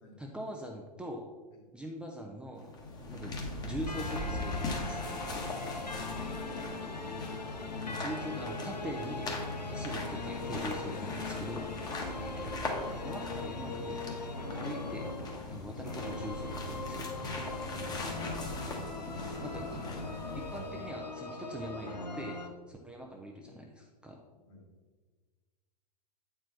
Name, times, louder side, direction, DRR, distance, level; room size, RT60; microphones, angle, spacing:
voice 1, 0.2-1.3 1.7-2.8 3.1-5.0 7.9-9.4 9.7-11.7 12.5-12.6 13.0-14.0 14.6-15.0 15.5-17.1 19.2-19.8 20.3-24.2, equal, 5° right, 0 dB, 0.6 m, -42 dB
sound 1, 2.6-20.8, left 2 dB, 20° left, 1.2 m, -39 dB
sound 2, 3.9-22.5, left 3 dB, 85° left, 0.8 m, -41 dB
voice 2, 6.1-7.5 9.6-9.9 17.6-18.5 24.3-24.7, left 2 dB, 50° left, -1 dB, 1.9 m, -53 dB
8.6 x 4.6 x 4.0 m, 1.4 s
figure-of-eight pair, 95°, 21 cm